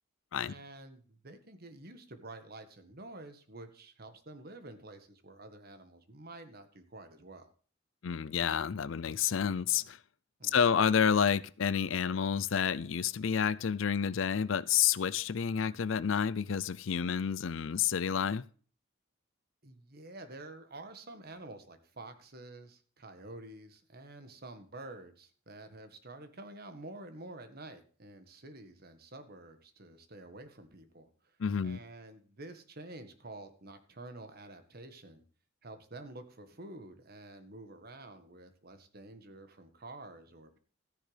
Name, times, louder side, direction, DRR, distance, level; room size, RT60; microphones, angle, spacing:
voice 1, 0.4-7.5 10.4-10.7 19.6-31.4 31.6-35.2 35.6-40.6, right 2 dB, 50° right, 1.6 m, -49 dB
voice 2, 8.0-10.0 10.4-18.4 31.4-31.8, left 7 dB, 70° left, 0.5 m, -29 dB
14.0 x 10.0 x 3.4 m
head